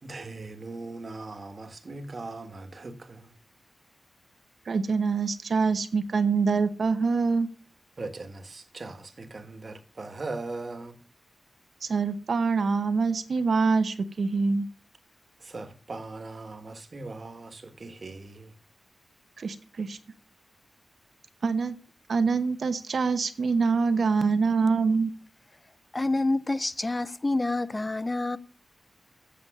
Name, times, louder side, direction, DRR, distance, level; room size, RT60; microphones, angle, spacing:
voice 1, 0.0-3.3 8.0-11.0 15.4-18.5, right 3 dB, 45° right, 1.5 m, -39 dB
voice 2, 4.7-7.5 11.8-14.7 19.4-20.0 21.4-21.7 22.1-25.1, right 4 dB, 70° right, 1.0 m, -25 dB
voice 3, 25.9-28.4, left 2 dB, 25° left, 0.5 m, -27 dB
8.6 x 7.1 x 8.0 m
wide cardioid pair, 100°, 0 cm